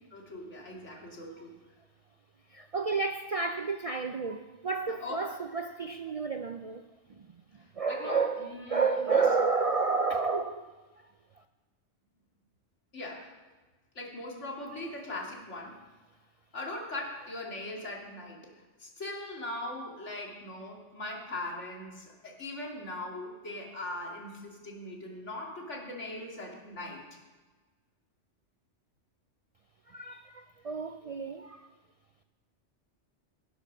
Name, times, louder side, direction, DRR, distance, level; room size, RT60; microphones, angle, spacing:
voice 1, 0.1-1.6 5.0-5.2 7.6-9.2 12.9-13.3 13.9-15.8 16.5-18.5 18.8-27.0, left 2 dB, 85° left, 2.7 m, -40 dB
voice 2, 2.5-6.9 7.8-10.7 29.9-31.7, right 4 dB, 55° right, 0.4 m, -30 dB
17.0 x 7.1 x 6.1 m
omnidirectional pair, 1.2 m